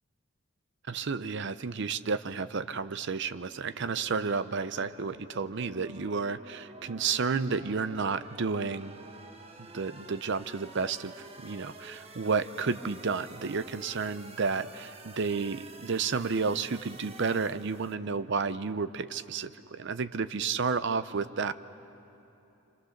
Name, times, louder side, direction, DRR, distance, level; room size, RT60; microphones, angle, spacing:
voice 1, 0.9-9.0 9.6-21.5, right 5 dB, 55° right, 13 dB, 0.6 m, -31 dB
sound 1, 3.8-17.9, right 2 dB, 30° right, 1.1 m, -50 dB
27.0 x 27.0 x 6.5 m, 2.9 s
head